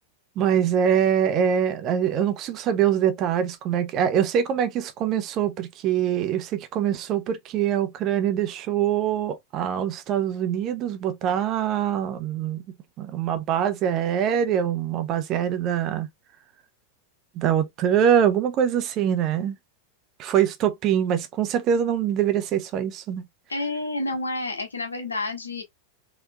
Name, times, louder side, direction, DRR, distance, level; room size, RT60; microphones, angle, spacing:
voice 1, 0.4-12.6 13.0-16.1 17.3-19.6 20.2-23.2, right 9 dB, 35° right, 0.8 m, -24 dB
voice 2, 23.5-25.6, left 2 dB, 75° left, 1.4 m, -29 dB
4.4 x 3.3 x 2.3 m
figure-of-eight pair, 90°, 0 cm